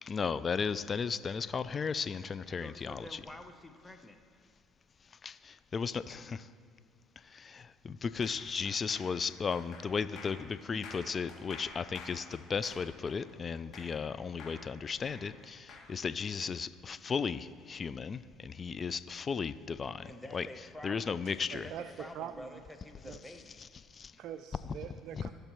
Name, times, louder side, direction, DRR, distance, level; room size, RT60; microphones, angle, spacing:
voice 1, 0.0-3.2 5.2-6.5 7.2-20.1 20.3-20.5 20.8-21.7 23.9-24.1 25.1-25.2, left 5 dB, 35° left, 15 dB, 0.3 m, -35 dB
voice 2, 2.6-4.2 20.0-21.2 21.5-21.7 22.0-23.6, left 1 dB, 10° left, 6 dB, 0.8 m, -48 dB
sound 1, 8.2-14.1 14.4-15.9, left 3 dB, 55° left, 2.5 m, -49 dB
voice 3, 21.2-22.6 23.0-23.2 24.2-25.3, right 10 dB, 65° right, 9 dB, 0.3 m, -44 dB
16.5 x 6.5 x 3.1 m, 2.2 s
supercardioid pair, 80°, 0 cm